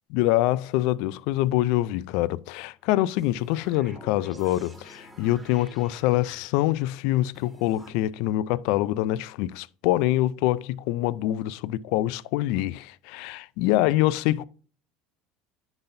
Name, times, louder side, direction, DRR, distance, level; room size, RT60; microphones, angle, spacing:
voice 1, 0.1-14.4, left 15 dB, 75° left, 0.3 m, -25 dB
sound 1, 3.2-6.7 7.3-7.9, right 1 dB, 10° right, 1.6 m, -48 dB
10.5 x 4.0 x 2.6 m
supercardioid pair, 115°, 0 cm